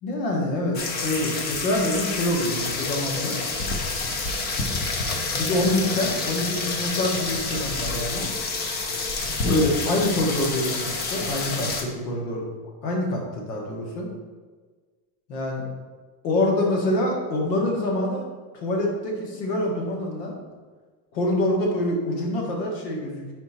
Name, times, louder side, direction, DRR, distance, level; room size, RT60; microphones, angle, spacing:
voice 1, 0.0-3.4 5.3-8.3 9.5-12.4 12.8-14.1 15.3-15.6 16.2-18.2 18.5-20.4 21.1-23.3, left 1 dB, 80° left, 0 dB, 1.8 m, -26 dB
sound 1, 0.7-11.8, left 3 dB, 20° left, 0.4 m, -28 dB
5.4 x 4.5 x 4.4 m, 1.4 s
supercardioid pair, 145°, 49 cm